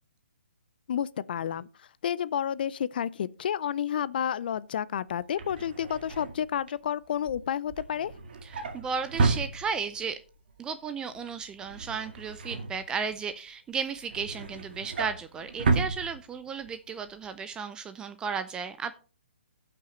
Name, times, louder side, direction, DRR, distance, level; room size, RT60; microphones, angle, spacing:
voice 1, 0.9-1.7 2.0-8.1, left 9 dB, 55° left, 0.5 m, -30 dB
Drawer open or close, 5.1-10.1 10.5-10.8 11.1-13.3 13.7-16.7 17.1-17.3 17.5-17.6, right 4 dB, 55° right, 1.9 m, -32 dB
voice 2, 8.4-10.2 10.6-18.9, right 6 dB, 15° right, 0.4 m, -34 dB
15.5 x 5.9 x 3.1 m
hypercardioid pair, 135°, 6 cm